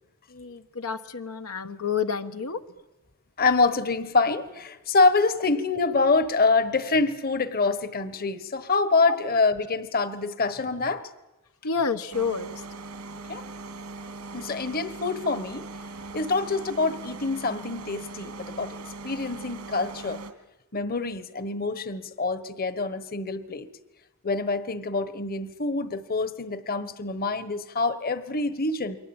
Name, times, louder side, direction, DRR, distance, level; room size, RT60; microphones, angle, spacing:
voice 1, 0.3-2.6 9.1-9.4 11.6-12.6, left 5 dB, 80° left, 7 dB, 1.3 m, -29 dB
voice 2, 3.4-11.0 13.3-13.4 14.3-15.7 16.1-20.2 20.7-23.7 24.2-29.0, left 3 dB, 45° left, 14 dB, 1.3 m, -26 dB
sound 1, 12.1-20.3, right 3 dB, 90° right, 2.9 m, -40 dB
29.0 x 23.0 x 8.9 m, 1.0 s
head